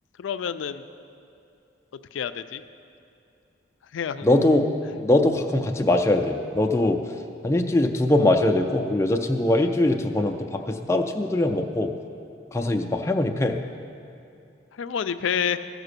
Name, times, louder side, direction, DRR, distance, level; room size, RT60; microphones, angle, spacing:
voice 1, 0.2-0.8 2.1-2.6 3.9-4.3 14.8-15.6, left 8 dB, 85° left, 11 dB, 0.4 m, -28 dB
voice 2, 4.2-4.6 4.9-7.0 7.4-11.9 12.5-13.6, left 1 dB, 15° left, 3 dB, 0.4 m, -22 dB
14.0 x 4.8 x 6.7 m, 2.6 s
head